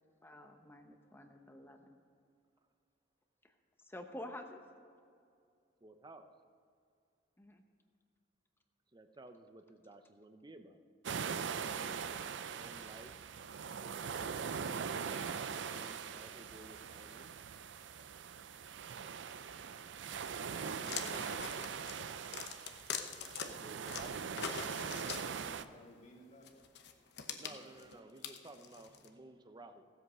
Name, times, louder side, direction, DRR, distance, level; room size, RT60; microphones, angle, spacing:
voice 1, 0.2-2.0 3.4-4.6 7.4-7.6, left 1 dB, 15° left, 5 dB, 0.8 m, -50 dB
voice 2, 5.8-6.3 8.9-10.8 11.6-12.1 12.5-13.2 14.4-14.7 15.7-17.3 20.3-21.7 23.3-24.4 27.0-29.8, right 2 dB, 25° right, 8 dB, 0.7 m, -55 dB
sound 1, 11.0-25.6, right 6 dB, 70° right, 0.5 m, -41 dB
sound 2, 20.8-23.5 23.9-25.7 26.4-29.1, left 7 dB, 65° left, 0.9 m, -43 dB
voice 3, 25.1-26.6 27.2-27.9, left 1 dB, 40° left, 0 dB, 2.0 m, -59 dB
16.0 x 8.0 x 5.6 m, 2.3 s
head